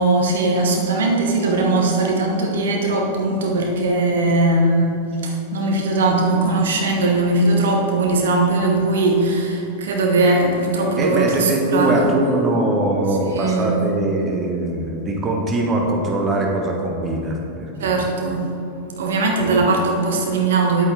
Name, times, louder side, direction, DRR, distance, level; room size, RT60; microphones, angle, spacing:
voice 1, 0.0-4.9 5.2-12.1 13.2-13.8 17.8-18.5 19.0-20.8, right 2 dB, 60° right, 0 dB, 1.3 m, -19 dB
voice 2, 11.0-18.2 19.4-19.6, right 1 dB, 25° right, 1 dB, 1.2 m, -22 dB
9.5 x 8.7 x 3.5 m, 2.9 s
figure-of-eight pair, 90°, 0 cm